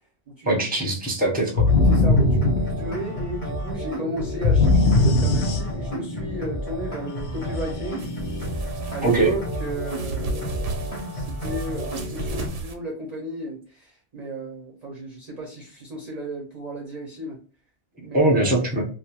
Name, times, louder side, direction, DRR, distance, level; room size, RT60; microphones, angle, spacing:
voice 1, 0.4-1.6 9.0-9.3 18.1-18.8, right 2 dB, 10° right, -1 dB, 0.6 m, -21 dB
sound 1, 1.6-3.3 4.4-6.1, left 2 dB, 70° left, 0.8 m, -19 dB
sound 2, 1.7-12.5, equal, 35° left, 0.7 m, -31 dB
voice 2, 1.9-8.0 8.6-10.7 11.1-17.4 18.0-18.6, right 1 dB, 50° right, -1 dB, 0.5 m, -34 dB
sound 3, 8.0-12.7, right 3 dB, 85° right, 0.9 m, -35 dB
2.3 x 2.2 x 2.9 m, 0.40 s
omnidirectional pair, 1.2 m